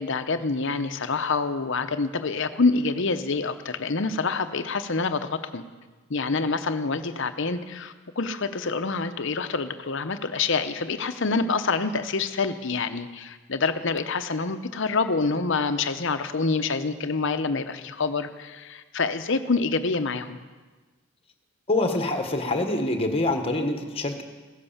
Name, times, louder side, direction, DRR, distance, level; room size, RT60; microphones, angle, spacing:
voice 1, 0.0-5.6 6.1-20.4, left 4 dB, 60° left, 9 dB, 0.8 m, -26 dB
voice 2, 21.7-24.2, left 2 dB, 25° left, 5 dB, 1.3 m, -25 dB
15.5 x 11.0 x 7.2 m, 1.3 s
head